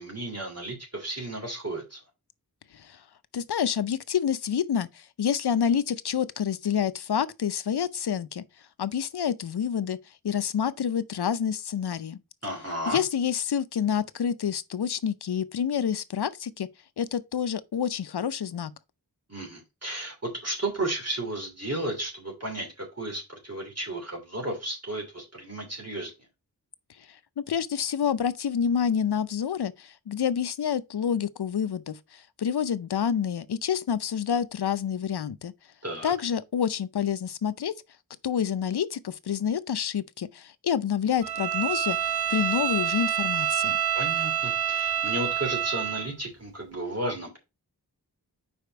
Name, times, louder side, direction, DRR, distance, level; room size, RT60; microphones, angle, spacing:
voice 1, 0.0-2.0 12.4-13.0 19.3-26.1 35.8-36.1 43.9-47.4, right 1 dB, 40° right, 2.7 m, -33 dB
voice 2, 3.3-8.4 8.8-10.0 10.2-12.2 12.9-16.7 17.0-18.7 27.5-35.5 36.0-37.7 38.2-43.8, left 8 dB, 75° left, 0.6 m, -28 dB
Bowed string instrument, 41.2-46.1, right 10 dB, 70° right, 1.1 m, -27 dB
5.0 x 5.0 x 4.5 m
wide cardioid pair, 75°, 40 cm